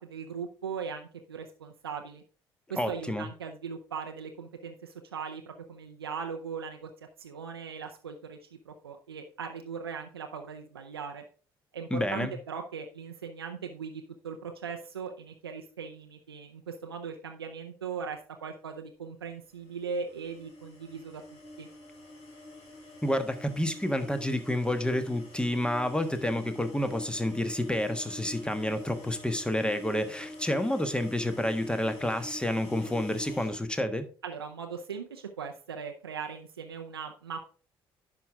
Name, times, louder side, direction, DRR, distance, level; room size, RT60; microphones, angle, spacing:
voice 1, 0.0-2.2 2.7-6.9 7.2-11.2 11.7-21.2 21.6-21.7 34.2-37.4, right 6 dB, 85° right, 4 dB, 0.6 m, -39 dB
voice 2, 2.8-3.3 11.9-12.4 23.0-34.1, left 1 dB, 5° left, 9 dB, 1.4 m, -29 dB
sound 1, 19.7-33.6, left 1 dB, 55° left, 3.4 m, -45 dB
10.5 x 6.1 x 3.6 m, 0.41 s
figure-of-eight pair, 50°, 12 cm